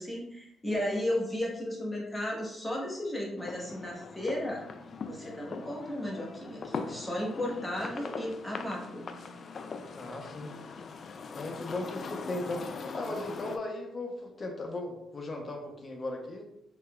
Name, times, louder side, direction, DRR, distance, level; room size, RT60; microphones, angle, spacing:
voice 1, 0.0-4.6 5.0-9.0, left 1 dB, 5° left, -4 dB, 1.1 m, -34 dB
sound 1, 3.4-13.6, left 5 dB, 50° left, 0.3 m, -41 dB
voice 2, 9.9-16.4, left 2 dB, 30° left, 2 dB, 0.8 m, -38 dB
3.9 x 3.2 x 2.3 m, 0.82 s
cardioid pair, 90°, 0 cm